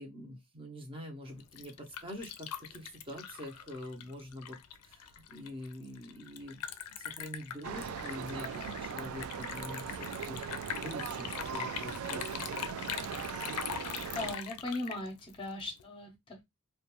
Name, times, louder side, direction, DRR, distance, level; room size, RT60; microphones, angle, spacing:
voice 1, 0.0-6.6 7.0-12.3, left 1 dB, 25° right, 0.6 m, -45 dB
Liquid, 1.3-15.8, left 9 dB, 85° left, 0.4 m, -42 dB
sound 1, 7.6-14.4, right 7 dB, 75° right, 0.3 m, -39 dB
voice 2, 14.1-16.5, left 2 dB, 25° left, 0.6 m, -39 dB
2.4 x 2.2 x 2.9 m
head